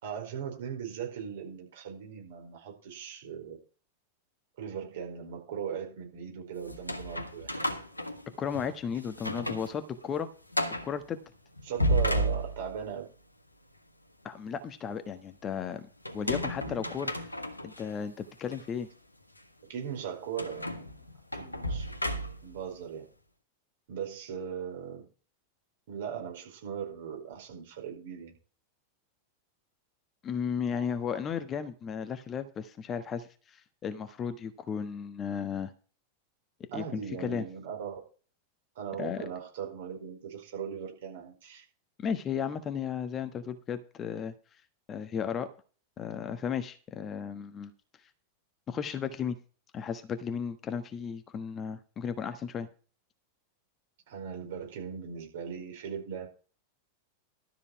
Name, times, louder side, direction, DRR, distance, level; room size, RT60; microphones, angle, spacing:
voice 1, 0.0-3.6 4.6-7.7 11.6-13.1 16.6-16.9 19.6-20.8 21.3-21.9 22.4-23.0 23.9-25.0 25.9-28.3 36.7-38.0 38.7-41.6 54.1-56.3, right 7 dB, 55° right, 1 dB, 4.8 m, -39 dB
sound 1, 6.6-8.7 9.1-9.7 10.0-10.1 10.5-10.9 11.6-12.9 16.0-17.8 18.5-18.6 20.4-22.6, equal, 85° left, 1.4 m, -32 dB
voice 2, 8.4-10.3 10.8-11.2 14.2-15.9 16.1-17.1 17.6-18.9 30.2-35.7 36.7-37.4 39.0-39.3 42.0-44.3 44.9-45.5 46.0-47.7 48.7-49.4 49.7-52.7, left 7 dB, 25° left, 10 dB, 1.2 m, -34 dB
13.0 x 7.0 x 4.8 m, 0.37 s
figure-of-eight pair, 90°, 0 cm